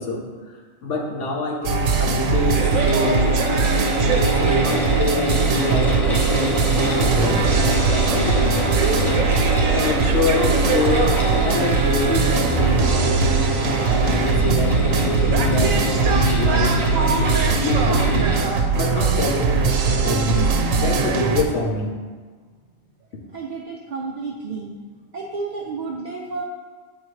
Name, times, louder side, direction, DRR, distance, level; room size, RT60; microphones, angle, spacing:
voice 1, 0.0-3.4 4.1-8.7 9.6-13.2 13.8-18.3 18.7-20.5 20.8-21.9, left 2 dB, 65° left, 0 dB, 1.2 m, -26 dB
sound 1, 1.6-21.4, right 5 dB, 80° right, 1.1 m, -20 dB
sound 2, 2.2-18.4, equal, ahead, 1.0 m, -27 dB
sound 3, 4.3-20.5, equal, 25° left, 1.1 m, -30 dB
voice 2, 23.3-24.7 25.1-26.4, right 4 dB, 60° right, -1 dB, 0.4 m, -31 dB
8.5 x 3.7 x 3.2 m, 1.4 s
omnidirectional pair, 1.4 m